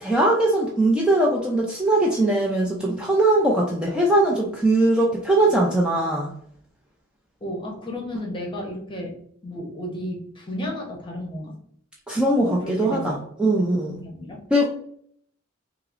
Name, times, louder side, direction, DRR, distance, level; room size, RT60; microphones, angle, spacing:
voice 1, 0.0-6.3 12.1-14.0 14.5-14.7, right 1 dB, 5° right, -3 dB, 0.4 m, -20 dB
voice 2, 7.4-9.1 9.4-11.5 12.4-13.1 13.8-14.4, left 1 dB, 25° left, 0 dB, 0.9 m, -33 dB
5.5 x 2.0 x 2.5 m, 0.64 s
head